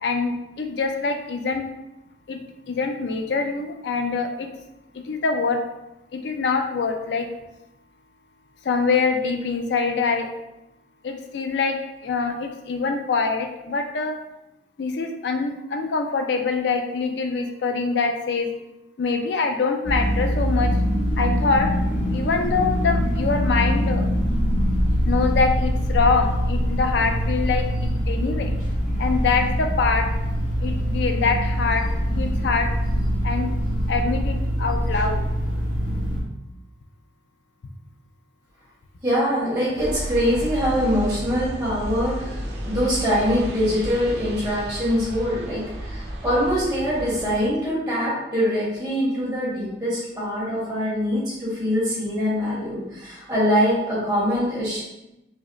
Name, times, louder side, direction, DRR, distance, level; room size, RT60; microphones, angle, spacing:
voice 1, 0.0-1.6 2.3-2.4 2.7-4.5 4.9-5.6 6.1-7.3 8.6-10.3 11.0-11.8 12.0-14.2 14.8-18.5 19.0-20.7 21.2-21.7 22.1-24.1 25.1-28.5 29.0-30.1 30.6-32.7 33.2-33.5 33.9-35.2, left 4 dB, 70° left, 5 dB, 0.4 m, -24 dB
sound 1, 19.9-36.2, equal, 45° left, 1.0 m, -23 dB
voice 2, 39.0-54.8, equal, 20° right, -8 dB, 1.3 m, -23 dB
sound 2, 39.8-47.5, equal, 70° right, 0.6 m, -32 dB
4.8 x 2.1 x 3.0 m, 0.92 s
head